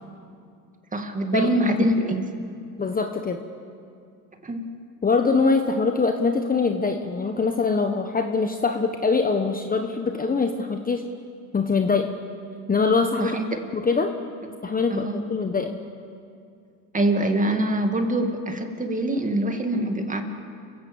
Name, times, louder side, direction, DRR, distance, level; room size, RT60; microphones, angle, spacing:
voice 1, 0.9-2.3 4.4-4.7 13.2-13.5 14.9-15.2 16.9-20.2, right 1 dB, 15° right, 5 dB, 2.4 m, -24 dB
voice 2, 2.8-3.4 5.0-11.0 11.5-12.1 12.7-13.4 13.7-14.1 14.6-15.8, left 4 dB, 20° left, 5 dB, 1.2 m, -23 dB
29.0 x 16.5 x 7.3 m, 2.4 s
supercardioid pair, 105°, 46 cm